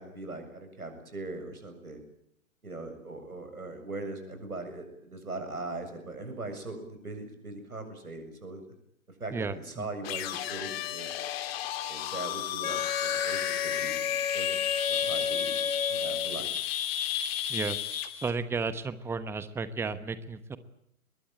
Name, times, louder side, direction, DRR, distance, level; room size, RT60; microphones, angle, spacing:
voice 1, 0.0-2.0 2.6-8.6 9.2-11.1 11.9-15.5 15.9-16.5, right 2 dB, 90° right, 6 dB, 7.3 m, -40 dB
voice 2, 9.3-9.9 17.5-17.8 18.1-20.6, right 4 dB, 5° right, 13 dB, 1.0 m, -33 dB
sound 1, 10.0-18.3, left 11 dB, 45° left, 2.6 m, -33 dB
Wind instrument woodwind instrument, 12.6-16.4, left 6 dB, 75° left, 3.8 m, -32 dB
23.5 x 21.5 x 9.1 m, 0.72 s
figure-of-eight pair, 125°, 43 cm